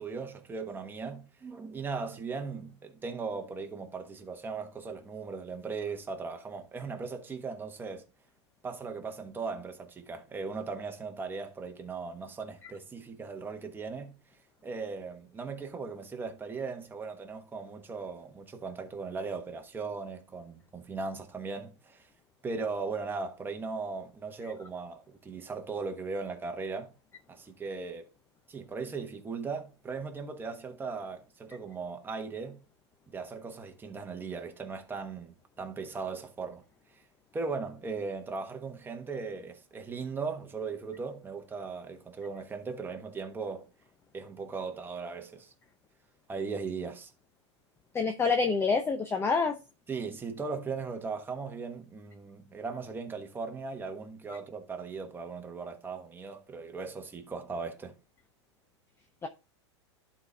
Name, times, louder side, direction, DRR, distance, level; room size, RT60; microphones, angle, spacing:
voice 1, 0.0-8.0 8.6-14.2 14.6-22.1 22.4-26.9 27.3-28.1 28.5-32.6 33.1-36.6 37.3-43.7 44.1-45.5 46.3-47.1 49.9-57.9, right 4 dB, 15° right, 1.2 m, -38 dB
voice 2, 47.9-49.6 59.2-59.3, left 4 dB, 15° left, 0.7 m, -27 dB
11.5 x 4.3 x 3.4 m
hypercardioid pair, 120°, 15 cm